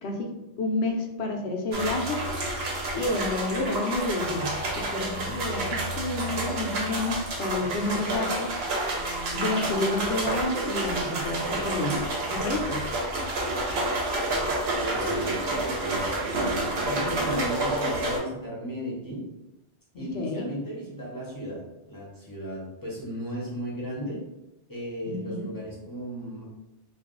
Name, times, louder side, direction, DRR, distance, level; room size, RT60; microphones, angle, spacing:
voice 1, 0.0-2.2 2.9-8.5 9.3-12.0 12.3-12.9 19.9-20.5 25.1-25.5, left 2 dB, 65° left, 2 dB, 0.8 m, -30 dB
sound 1, 1.7-18.2, right 2 dB, 65° right, 0.9 m, -29 dB
voice 2, 14.8-19.2 20.0-21.6 21.9-24.2 24.7-26.4, equal, 20° left, -6 dB, 0.7 m, -35 dB
2.4 x 2.4 x 3.6 m, 0.92 s
omnidirectional pair, 1.2 m